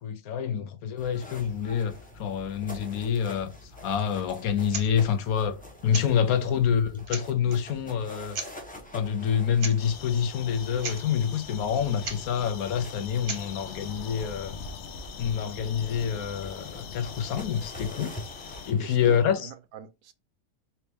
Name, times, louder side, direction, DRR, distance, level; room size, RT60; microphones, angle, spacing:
voice 1, 0.0-3.5 3.8-5.6 5.8-8.4 8.9-14.6 15.2-18.1 18.6-19.4, left 8 dB, 75° left, 1.1 m, -27 dB
sound 1, 1.0-19.2, left 1 dB, 10° left, 0.5 m, -47 dB
sound 2, 4.7-4.9 5.9-6.1 6.7-6.8 7.1-7.6 8.3-8.5 9.6-9.8 10.0-10.1 10.5-10.6 10.8-11.0 12.0-12.2 13.3-13.5, right 4 dB, 40° right, 0.9 m, -35 dB
sound 3, 9.8-18.7, left 6 dB, 60° left, 0.8 m, -41 dB
voice 2, 18.8-20.1, right 10 dB, 75° right, 1.0 m, -42 dB
4.3 x 2.9 x 3.3 m
omnidirectional pair, 1.6 m